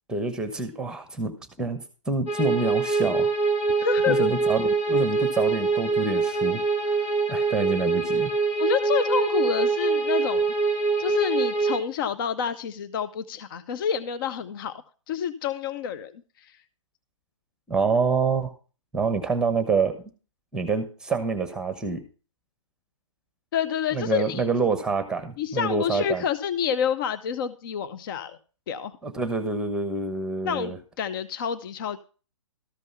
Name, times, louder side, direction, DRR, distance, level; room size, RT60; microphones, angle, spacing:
voice 1, 0.1-1.3 1.6-3.3 4.1-6.6 7.3-8.3 17.7-18.5 18.9-20.0 20.5-22.0 23.9-26.2 29.0-30.8, right 4 dB, 5° right, 9 dB, 1.1 m, -27 dB
sound 1, 2.3-11.8, right 4 dB, 20° left, 2.7 m, -24 dB
voice 2, 3.8-4.3 8.6-10.5 11.0-14.8 15.1-16.1 16.4-16.5 23.5-24.5 25.4-28.4 28.7-29.0 30.4-32.0, left 7 dB, 45° left, 12 dB, 0.6 m, -28 dB
13.5 x 5.4 x 5.5 m, 0.36 s
hypercardioid pair, 135°, 16 cm